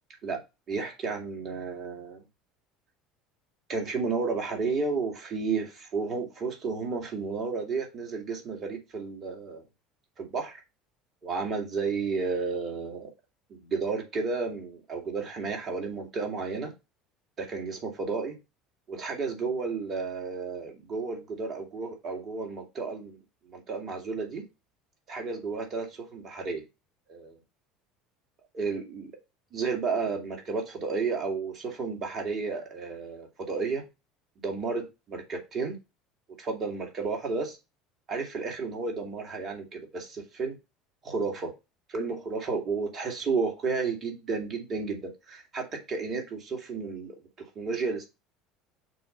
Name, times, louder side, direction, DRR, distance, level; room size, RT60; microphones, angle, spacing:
voice 1, 0.7-2.2 3.7-9.6 10.2-10.6 11.2-13.1 13.6-16.7 17.4-18.3 18.9-23.2 23.5-24.4 25.1-26.6 27.1-27.4 28.5-29.1 29.5-33.8 34.4-35.8 36.4-37.6 38.1-40.5 41.0-41.5 41.9-47.2 47.6-48.1, right 4 dB, 45° right, 2.1 m, -32 dB
6.8 x 2.7 x 5.3 m
hypercardioid pair, 70°, 0 cm